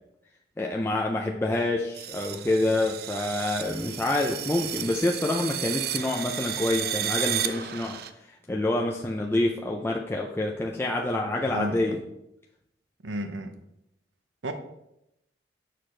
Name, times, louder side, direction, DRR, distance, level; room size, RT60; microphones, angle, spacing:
voice 1, 0.6-8.0 8.5-12.0, left 2 dB, 15° left, 0 dB, 0.4 m, -27 dB
sound 1, 2.0-8.1, right 10 dB, 55° right, 0.4 m, -33 dB
voice 2, 11.5-12.0 13.0-13.5 14.4-14.5, right 1 dB, 90° right, 7 dB, 0.8 m, -32 dB
6.5 x 5.8 x 3.2 m, 0.83 s
head